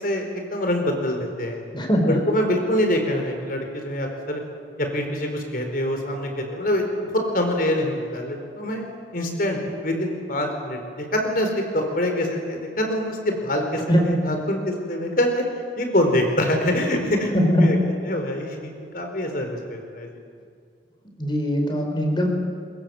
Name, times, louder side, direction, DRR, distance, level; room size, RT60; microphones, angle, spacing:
voice 1, 0.0-1.6 2.1-4.4 4.8-8.9 9.1-15.4 15.8-17.3 17.6-17.8 18.0-20.1, left 1 dB, 50° left, 4 dB, 4.4 m, -25 dB
voice 2, 1.7-2.2 13.8-14.2 17.3-17.9 21.2-22.3, equal, 25° left, 3 dB, 4.2 m, -21 dB
23.5 x 21.5 x 7.9 m, 2.2 s
head